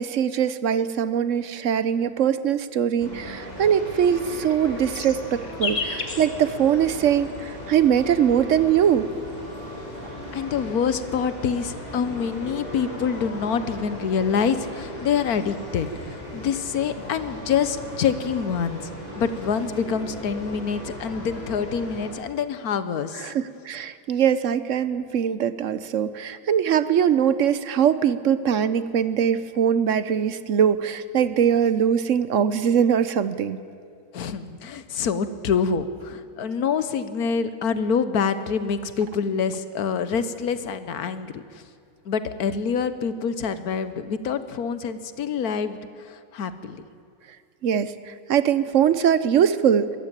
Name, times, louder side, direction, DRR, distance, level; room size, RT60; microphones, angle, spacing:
voice 1, 0.0-9.1 23.1-33.6 47.6-49.9, right 8 dB, 65° right, 14 dB, 1.0 m, -22 dB
sound 1, 3.0-22.1, left 1 dB, 25° left, 5.9 m, -37 dB
sound 2, 4.2-7.6 8.6-9.9 10.8-12.6 14.0-16.2 16.6-17.1 17.4-18.5 18.8-19.4, left 4 dB, 60° left, 2.1 m, -37 dB
voice 2, 10.3-15.9 16.3-23.3 34.1-41.4 42.1-45.8 46.3-46.8, left 6 dB, 90° left, 12 dB, 1.5 m, -26 dB
23.0 x 14.0 x 9.0 m, 2.3 s
omnidirectional pair, 1.5 m